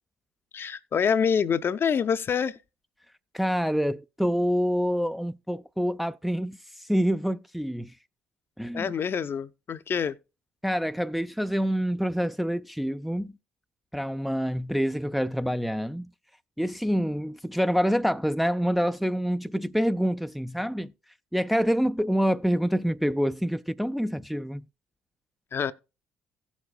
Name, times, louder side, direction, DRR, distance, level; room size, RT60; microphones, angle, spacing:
voice 1, 0.5-2.6 8.7-10.2 25.5-25.7, left 7 dB, 40° left, 0.6 m, -26 dB
voice 2, 3.3-7.9 8.6-8.9 10.6-13.3 13.9-16.1 16.6-20.9 21.3-24.6, equal, ahead, 0.4 m, -26 dB
16.5 x 7.2 x 2.3 m
hypercardioid pair, 50°, 6 cm